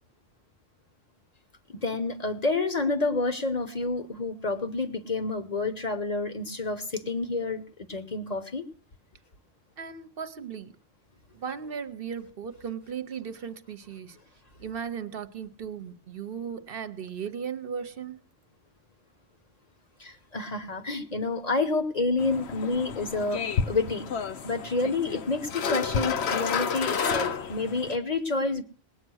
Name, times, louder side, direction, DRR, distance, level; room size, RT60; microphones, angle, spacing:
voice 1, 1.7-7.6 7.9-8.7 20.0-24.1 24.4-28.6, left 3 dB, 40° left, 1.0 m, -29 dB
voice 2, 9.8-10.7 11.3-14.2 14.6-18.2, right 7 dB, 60° right, 1.0 m, -36 dB
sound 1, 22.2-28.0, left 6 dB, 80° left, 1.2 m, -31 dB
18.5 x 8.8 x 6.3 m
omnidirectional pair, 1.1 m